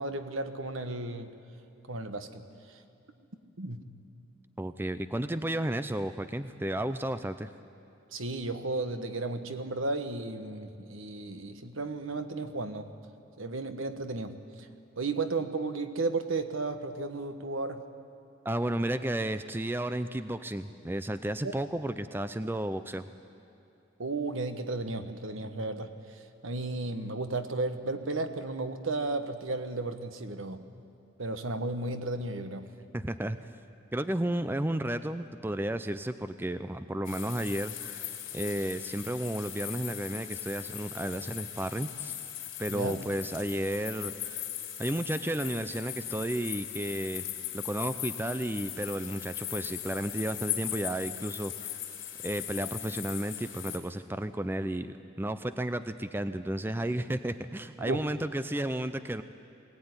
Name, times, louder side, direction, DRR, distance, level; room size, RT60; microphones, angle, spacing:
voice 1, 0.0-1.3 1.9-2.4 3.6-3.8 8.1-12.9 13.4-14.4 15.0-17.9 21.4-21.5 24.0-25.9 26.4-30.6 31.2-32.7 42.7-43.0 57.8-58.0, right 3 dB, 75° right, 8 dB, 1.3 m, -34 dB
voice 2, 4.6-7.5 18.4-23.1 32.9-33.5 33.9-42.2 42.6-44.5 44.8-47.3 47.5-51.8 52.2-59.2, right 1 dB, 10° right, 11 dB, 0.5 m, -33 dB
sound 1, 37.0-53.8, left 12 dB, 70° left, 3.7 m, -39 dB
22.0 x 17.5 x 9.7 m, 2.9 s
head